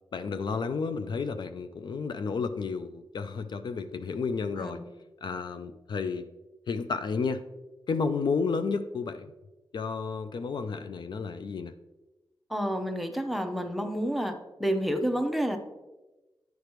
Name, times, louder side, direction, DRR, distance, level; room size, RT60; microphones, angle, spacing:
voice 1, 0.1-4.8 5.2-6.3 6.7-7.4 7.9-9.3 9.7-11.7, left 5 dB, 60° left, 10 dB, 0.3 m, -31 dB
voice 2, 12.5-15.6, equal, ahead, 6 dB, 0.6 m, -29 dB
9.3 x 5.0 x 3.0 m, 1.1 s
wide cardioid pair, 130°, 8 cm